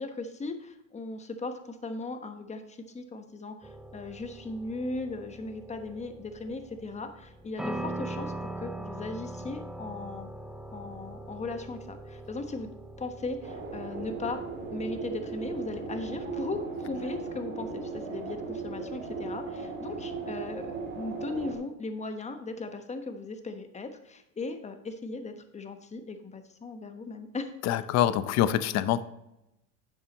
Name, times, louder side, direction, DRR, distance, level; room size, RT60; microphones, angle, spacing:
voice 1, 0.0-10.3 10.7-12.7 13.0-14.4 14.7-27.9, left 3 dB, 15° left, 7 dB, 1.1 m, -38 dB
sound 1, 3.6-16.7, right 1 dB, ahead, 0.4 m, -42 dB
sound 2, 13.4-21.6, right 4 dB, 25° right, 2.4 m, -37 dB
voice 2, 27.7-29.0, left 11 dB, 40° left, 14 dB, 0.7 m, -25 dB
10.5 x 7.3 x 3.0 m, 0.88 s
supercardioid pair, 105°, 42 cm